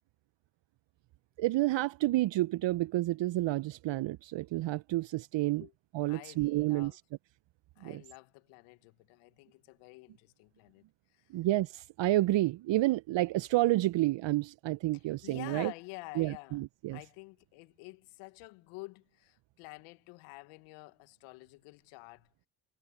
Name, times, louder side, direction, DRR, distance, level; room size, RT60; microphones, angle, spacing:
voice 1, 1.4-5.6 5.9-6.9 7.8-8.0 11.3-15.7 16.2-17.0, right 17 dB, 60° right, 0.9 m, -30 dB
voice 2, 6.1-7.0 7.8-10.8 11.1-11.3 14.9-16.6 16.9-22.5, left 26 dB, 80° left, 1.8 m, -49 dB
hypercardioid pair, 45°, 49 cm